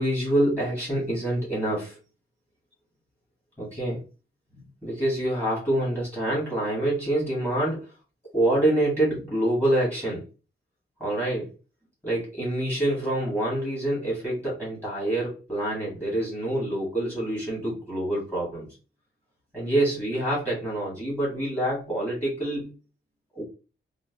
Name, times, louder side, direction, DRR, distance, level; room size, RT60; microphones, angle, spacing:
voice 1, 0.0-2.0 3.6-4.0 4.5-7.8 8.3-10.2 11.0-11.5 12.0-18.7 19.5-22.7 23.3-23.4, right 1 dB, 10° left, -6 dB, 1.8 m, -26 dB
3.7 x 2.2 x 3.5 m, 0.34 s
wide cardioid pair, 155°, 21 cm